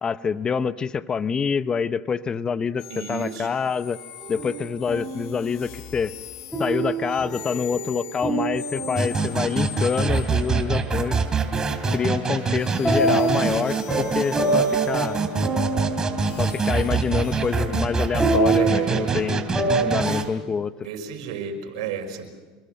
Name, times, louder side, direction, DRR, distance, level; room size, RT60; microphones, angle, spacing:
voice 1, 0.0-4.0 4.3-6.1 6.6-11.2 11.9-15.2 16.4-19.5 19.8-20.7, left 6 dB, 25° left, 13 dB, 0.9 m, -26 dB
sound 1, 2.8-11.1 11.8-17.5, left 10 dB, 70° left, 3.5 m, -42 dB
voice 2, 2.9-3.5 18.6-19.2 20.8-22.3, right 7 dB, 80° right, 5 dB, 5.7 m, -32 dB
sound 2, 4.2-5.4 6.5-9.7 12.8-19.9, right 2 dB, ahead, 6.9 m, -27 dB
sound 3, 9.0-20.3, right 4 dB, 20° right, 3.2 m, -25 dB
28.0 x 22.0 x 6.6 m, 1.3 s
supercardioid pair, 115°, 3 cm